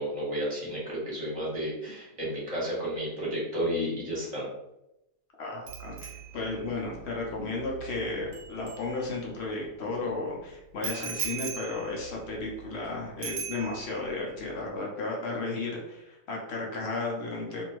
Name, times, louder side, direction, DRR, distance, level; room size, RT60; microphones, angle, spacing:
voice 1, 0.0-4.5, equal, 25° right, -6 dB, 1.1 m, -32 dB
voice 2, 5.4-17.6, left 3 dB, 60° left, -2 dB, 0.7 m, -34 dB
Bicycle bell, 5.7-9.5 10.8-12.9 13.2-14.1 14.4-14.7, right 8 dB, 85° right, 1.2 m, -39 dB
2.6 x 2.6 x 2.9 m, 0.88 s
omnidirectional pair, 1.7 m